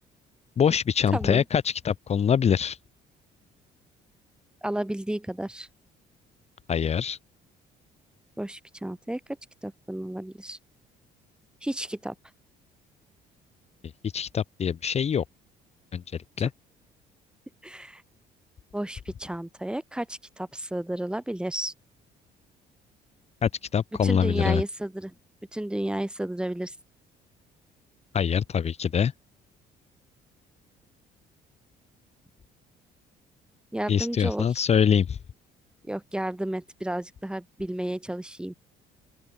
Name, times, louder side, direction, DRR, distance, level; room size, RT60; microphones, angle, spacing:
voice 1, 0.6-2.8 6.7-7.2 14.1-15.2 15.9-16.0 16.4-16.5 23.4-24.6 28.1-29.1 33.9-35.2, left 7 dB, 40° left, 1.5 m, -24 dB
voice 2, 1.1-1.4 4.6-5.7 8.4-9.2 9.6-10.6 11.6-12.1 17.6-18.0 18.7-21.7 24.0-25.1 25.5-26.7 33.7-34.6 35.8-38.5, right 1 dB, 5° right, 3.7 m, -32 dB
open air
cardioid pair, 110°, 17 cm